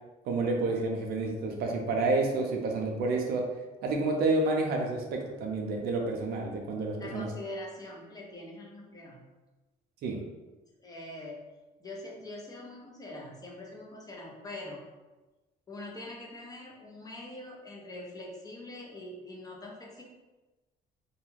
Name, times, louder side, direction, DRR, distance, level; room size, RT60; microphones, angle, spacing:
voice 1, 0.3-3.5 3.8-7.3 10.0-10.2, right 3 dB, 70° right, 1 dB, 0.5 m, -29 dB
voice 2, 7.0-9.3 10.8-11.4 11.8-14.9 15.7-20.0, left 1 dB, 20° left, -3 dB, 0.7 m, -43 dB
2.3 x 2.2 x 3.1 m, 1.1 s
cardioid pair, 110°, 17 cm